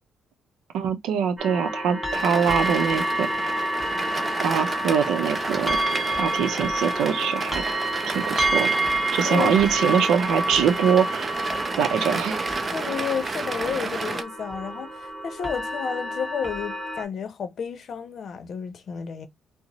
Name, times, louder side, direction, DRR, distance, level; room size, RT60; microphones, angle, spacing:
voice 1, 0.7-3.5 4.4-5.8 6.1-7.6 8.1-8.7 9.1-11.3 11.8-12.5, right 7 dB, 85° right, 0.6 m, -23 dB
sound 1, 1.4-17.0, right 1 dB, 10° right, 1.1 m, -28 dB
sound 2, 2.1-14.2, right 3 dB, 30° right, 0.5 m, -32 dB
voice 2, 12.7-19.3, left 7 dB, 55° left, 0.7 m, -31 dB
2.9 x 2.0 x 4.0 m
cardioid pair, 90°, 0 cm